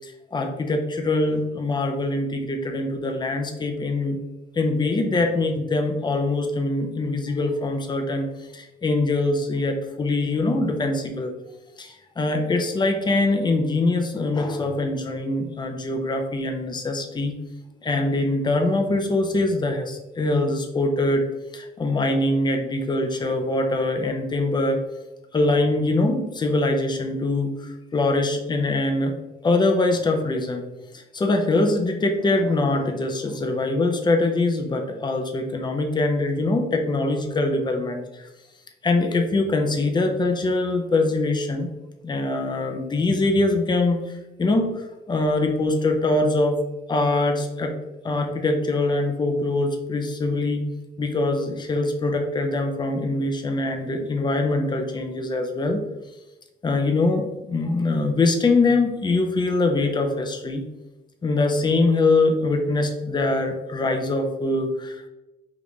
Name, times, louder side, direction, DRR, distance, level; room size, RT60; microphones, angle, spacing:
voice 1, 0.0-4.2 4.5-8.3 8.5-11.3 11.8-17.3 17.8-21.3 21.5-24.8 25.3-29.1 29.4-30.6 30.9-38.3 38.8-41.7 42.0-44.1 44.4-46.6 46.9-47.7 48.0-50.6 51.0-55.8 56.6-60.6 61.2-65.1, left 2 dB, 20° left, 4 dB, 0.5 m, -23 dB
2.9 x 2.5 x 3.5 m, 1.0 s
cardioid pair, 90°, 20 cm